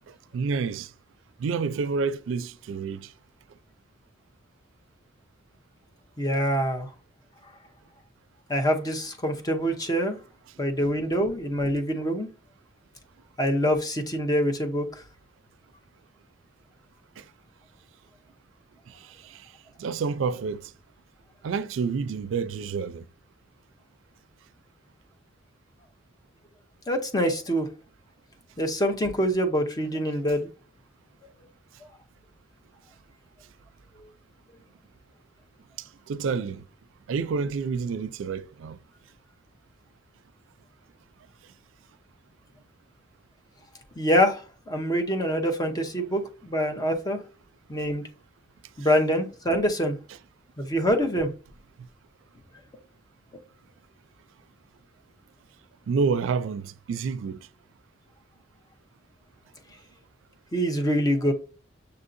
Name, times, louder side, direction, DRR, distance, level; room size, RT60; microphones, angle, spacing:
voice 1, 0.1-0.9 1.4-3.1 17.2-17.3 18.9-19.5 19.8-20.7 21.4-23.0 35.8-36.6 37.1-38.8 55.9-57.5, right 5 dB, 90° right, 0.4 m, -29 dB
voice 2, 6.2-6.9 8.5-10.2 10.6-12.3 13.4-15.0 26.9-27.7 28.6-30.5 44.0-47.2 47.7-48.0 48.8-50.0 50.6-51.3 60.5-61.3, equal, 20° left, 0.7 m, -25 dB
6.7 x 2.7 x 2.5 m
head